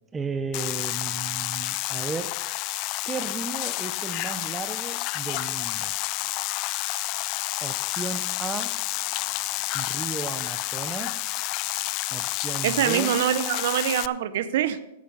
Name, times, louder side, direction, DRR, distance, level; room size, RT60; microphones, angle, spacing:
voice 1, 0.1-2.4 3.0-5.9 7.6-8.8 9.7-11.2 12.1-13.2, right 5 dB, 15° right, 11 dB, 0.6 m, -34 dB
sound 1, 0.5-14.1, left 20 dB, 40° left, 0.3 m, -30 dB
sound 2, 6.6-12.8, left 6 dB, 60° left, 3.5 m, -48 dB
voice 2, 12.6-14.8, right 10 dB, 60° right, 14 dB, 0.7 m, -24 dB
11.0 x 8.9 x 5.4 m, 0.91 s
hypercardioid pair, 135°, 0 cm